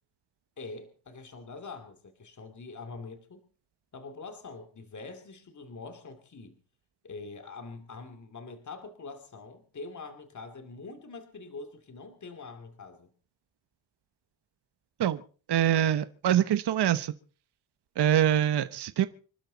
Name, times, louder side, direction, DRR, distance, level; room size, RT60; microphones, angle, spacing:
voice 1, 0.6-3.4 3.9-6.6 7.0-13.1, left 3 dB, 40° left, 7 dB, 2.7 m, -44 dB
voice 2, 15.5-17.1 18.0-19.1, right 11 dB, 60° right, 12 dB, 1.1 m, -24 dB
26.5 x 12.0 x 4.0 m, 0.39 s
cardioid pair, 105°, 46 cm